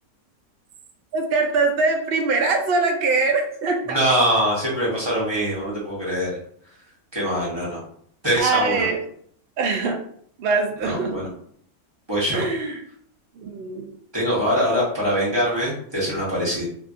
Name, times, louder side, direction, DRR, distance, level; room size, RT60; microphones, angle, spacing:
voice 1, 1.1-4.0 8.4-9.0 9.6-10.0 10.4-11.2 12.3-12.7 13.4-13.9, right 3 dB, 80° right, 3 dB, 0.5 m, -22 dB
voice 2, 3.8-6.4 7.1-7.8 8.2-8.9 10.8-11.3 12.1-12.4 14.1-16.6, equal, 25° right, -7 dB, 0.7 m, -23 dB
2.7 x 2.5 x 2.5 m, 0.63 s
omnidirectional pair, 1.5 m